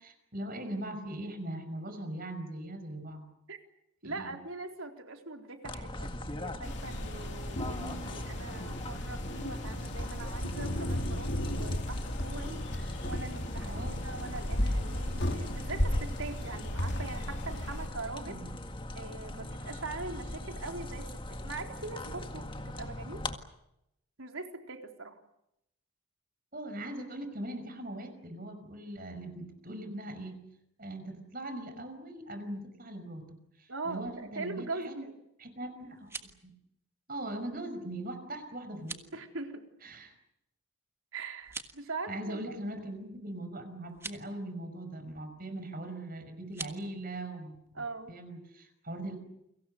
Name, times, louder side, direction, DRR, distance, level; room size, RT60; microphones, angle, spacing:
voice 1, 0.0-3.3 4.0-4.3 13.6-14.0 18.2-18.6 26.5-30.5 30.8-35.0 35.4-36.3 37.1-39.0 39.8-40.1 42.1-47.6 48.1-49.2, right 1 dB, 40° right, 8 dB, 5.5 m, -40 dB
voice 2, 4.0-18.4 18.9-23.3 24.2-25.2 33.7-35.2 39.1-39.6 41.1-42.6 47.7-48.1, right 3 dB, 75° right, 4 dB, 4.0 m, -42 dB
sound 1, 5.6-23.4, left 1 dB, 25° left, 1.8 m, -41 dB
sound 2, 6.6-17.9, left 1 dB, 55° left, 3.2 m, -35 dB
sound 3, 35.9-36.4 38.7-39.1 41.4-41.9 43.9-44.2 46.5-46.8, right 3 dB, 10° right, 1.5 m, -43 dB
29.5 x 24.5 x 6.7 m, 0.82 s
head